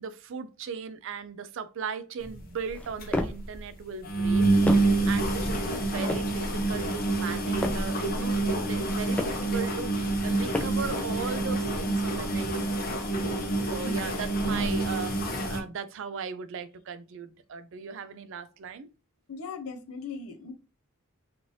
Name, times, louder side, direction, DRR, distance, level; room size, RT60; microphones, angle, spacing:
voice 1, 0.0-12.8 13.2-18.9, right 6 dB, 60° right, 0.4 m, -38 dB
sound 1, 2.2-2.4 2.7-2.8 3.0-3.1 3.4-3.6 4.0-15.6, right 2 dB, 45° left, 0.7 m, -27 dB
sound 2, 2.7-3.5 4.2-5.1 5.7-6.4 7.1-8.0 8.7-9.5 10.2-11.0, left 1 dB, 5° left, 0.4 m, -34 dB
voice 2, 13.8-14.2 19.3-20.5, left 4 dB, 85° left, 0.8 m, -39 dB
3.1 x 2.5 x 2.7 m
head